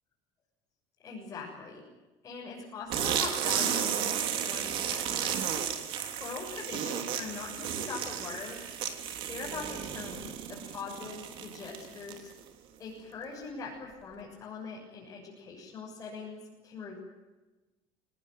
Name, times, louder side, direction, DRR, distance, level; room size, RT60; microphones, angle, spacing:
voice 1, 1.0-1.9 2.2-5.5 6.2-8.7 9.3-12.3 12.8-17.0, left 4 dB, 25° left, -4 dB, 7.2 m, -42 dB
sound 1, 2.9-12.4, right 9 dB, 50° right, 3.2 m, -33 dB
26.5 x 19.0 x 9.4 m, 1.1 s
cardioid pair, 160°, 11 cm